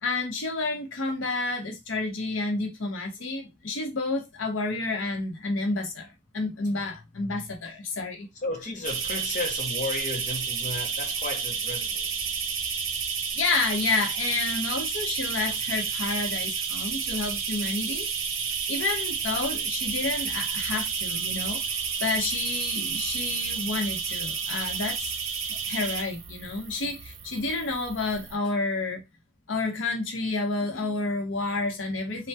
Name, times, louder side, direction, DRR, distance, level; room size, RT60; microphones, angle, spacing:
voice 1, 0.0-8.3 13.3-18.1 18.7-25.1 25.5-29.0 29.5-32.3, left 3 dB, 75° left, 0.7 m, -30 dB
voice 2, 8.4-12.1, left 2 dB, 40° left, 0.7 m, -33 dB
sound 1, 8.8-28.3, right 6 dB, 80° right, 0.6 m, -31 dB
3.3 x 2.1 x 2.7 m
head